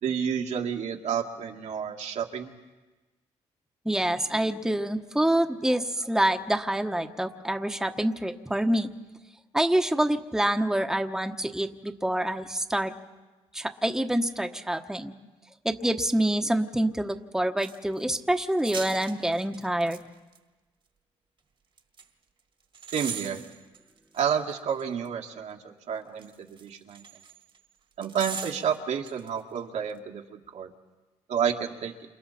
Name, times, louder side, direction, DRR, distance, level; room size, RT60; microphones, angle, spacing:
voice 1, 0.0-2.5 22.9-23.5 24.1-27.0 28.0-30.7 31.3-31.9, right 7 dB, 70° right, 1 dB, 2.1 m, -30 dB
voice 2, 3.8-8.9 9.5-12.9 13.5-15.1 15.6-20.0, right 1 dB, 5° right, 5 dB, 1.2 m, -26 dB
sound 1, 17.6-18.0 18.5-20.0 20.3-20.4 21.8-22.0 22.7-25.1 26.2-27.6 28.0-29.3 29.6-29.7, right 6 dB, 45° right, 1.7 m, -40 dB
28.5 x 28.0 x 4.3 m, 1.2 s
cardioid pair, 85°, 12 cm